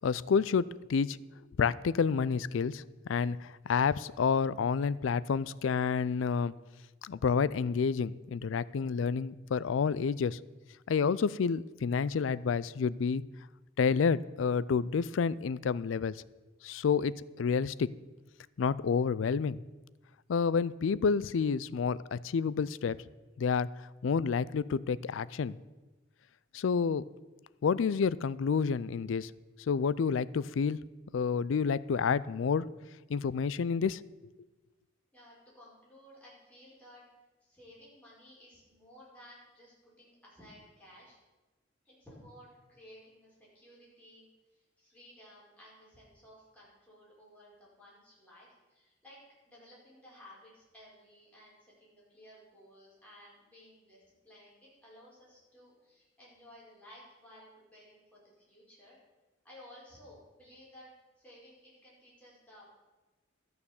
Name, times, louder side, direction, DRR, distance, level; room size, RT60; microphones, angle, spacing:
voice 1, 0.0-1.2 1.6-2.8 3.1-6.5 7.0-10.4 10.9-13.2 13.8-16.2 16.6-17.9 18.6-19.6 20.3-23.0 23.4-23.7 24.0-25.6 26.5-27.1 27.6-29.3 29.7-30.8 31.1-32.7 33.1-34.0, left 5 dB, 75° left, 19 dB, 0.4 m, -29 dB
voice 2, 35.1-37.0 37.4-41.2 41.9-44.3 44.5-49.2 49.5-59.0 59.4-62.8, equal, 5° left, -7 dB, 5.2 m, -56 dB
13.0 x 6.7 x 7.1 m, 1.2 s
head